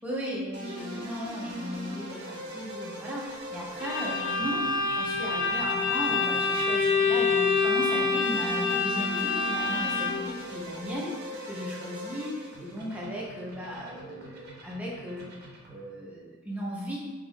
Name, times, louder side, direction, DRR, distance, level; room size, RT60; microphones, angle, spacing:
voice 1, 0.0-4.7 5.0-11.1 11.5-12.3 12.6-15.3 15.7-17.0, equal, 5° right, -5 dB, 0.7 m, -36 dB
sound 1, 0.5-15.9, equal, 50° right, 0.7 m, -41 dB
Bowed string instrument, 3.8-10.4, left 4 dB, 60° left, 0.4 m, -26 dB
3.5 x 2.4 x 3.6 m, 1.3 s
head